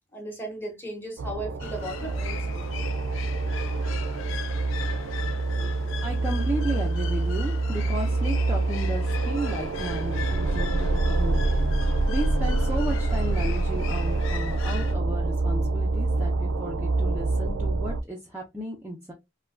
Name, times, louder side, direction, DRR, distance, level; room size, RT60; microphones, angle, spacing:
voice 1, 0.1-2.7, right 1 dB, 10° left, 1.0 m, -36 dB
sound 1, 1.2-18.0, right 2 dB, 70° right, 0.4 m, -26 dB
sound 2, 1.6-14.9, left 8 dB, 65° left, 0.4 m, -40 dB
voice 2, 5.4-11.5 12.1-19.1, right 1 dB, 10° right, 0.5 m, -34 dB
3.3 x 2.2 x 2.3 m
head